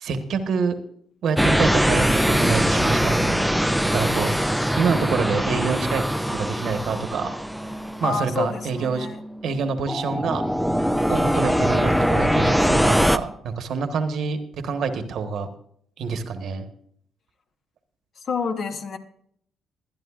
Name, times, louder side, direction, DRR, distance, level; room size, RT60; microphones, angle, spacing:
voice 1, 0.0-0.8 1.2-3.4 3.9-4.3 4.8-6.0 6.3-7.4 8.0-9.1 9.4-10.4 11.1-14.4 14.6-15.5 16.0-16.6, right 5 dB, 70° right, 8 dB, 1.2 m, -26 dB
sound 1, 1.4-9.5 9.9-13.2, equal, ahead, 0.5 m, -22 dB
voice 2, 8.0-9.2 18.3-19.0, left 5 dB, 55° left, 7 dB, 1.1 m, -28 dB
20.0 x 10.5 x 2.4 m, 0.67 s
cardioid pair, 90°, 0 cm